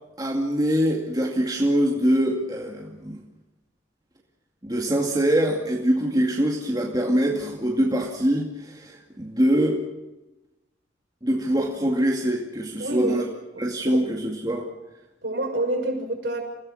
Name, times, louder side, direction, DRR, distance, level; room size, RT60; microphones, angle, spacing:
voice 1, 0.2-3.2 4.6-9.8 11.2-13.2 13.6-14.7, equal, 20° right, -1 dB, 2.3 m, -23 dB
voice 2, 12.8-13.2 13.5-14.1 15.2-16.4, right 1 dB, 60° right, 2 dB, 6.0 m, -28 dB
28.5 x 17.5 x 6.5 m, 1.0 s
head